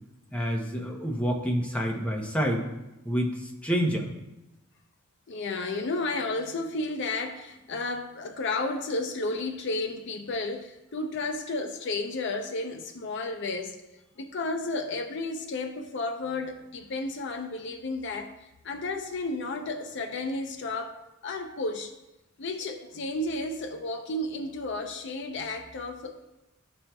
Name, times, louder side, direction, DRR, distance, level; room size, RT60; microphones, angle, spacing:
voice 1, 0.3-2.7 3.0-4.1, equal, 5° left, 0 dB, 0.7 m, -28 dB
voice 2, 5.3-13.8 14.2-18.3 18.6-21.9 22.4-26.3, left 2 dB, 60° left, 6 dB, 0.5 m, -32 dB
12.0 x 4.3 x 2.3 m, 0.95 s
head